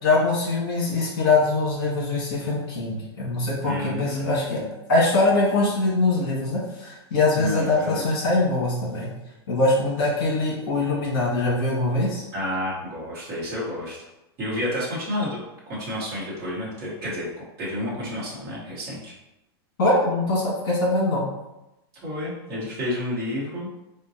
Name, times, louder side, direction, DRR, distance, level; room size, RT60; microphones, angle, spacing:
voice 1, 0.0-4.6 4.9-9.1 9.5-12.2 19.8-21.3, left 2 dB, 55° left, -5 dB, 1.4 m, -23 dB
voice 2, 3.6-4.7 7.3-8.0 12.3-14.0 14.4-15.4 15.7-17.3 17.6-19.1 22.0-23.7, left 1 dB, 25° right, -7 dB, 0.8 m, -30 dB
3.7 x 2.1 x 2.7 m, 0.92 s
supercardioid pair, 180°, 13 cm